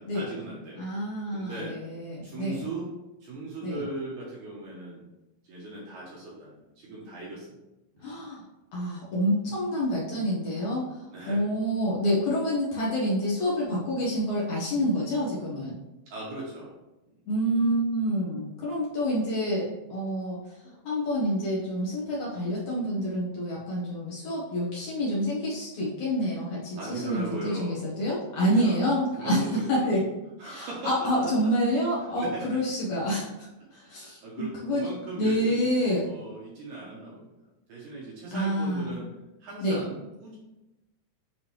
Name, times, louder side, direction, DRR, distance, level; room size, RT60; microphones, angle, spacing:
voice 1, 0.0-0.8 1.3-1.8 2.2-2.9 3.2-5.0 5.4-7.5 7.9-8.0 11.1-11.4 16.1-16.7 26.8-27.8 28.4-28.9 29.1-29.9 30.4-31.3 32.2-32.5 33.8-35.7 36.0-37.3 37.7-39.1 39.4-40.4, right 2 dB, 65° right, -5 dB, 2.1 m, -38 dB
voice 2, 0.8-2.6 3.6-3.8 8.0-8.4 8.7-15.8 17.3-30.0 30.4-34.9 35.2-36.1 38.3-38.9 39.6-39.8, equal, 65° left, -6 dB, 2.3 m, -28 dB
8.9 x 3.6 x 3.1 m, 0.98 s
omnidirectional pair, 4.4 m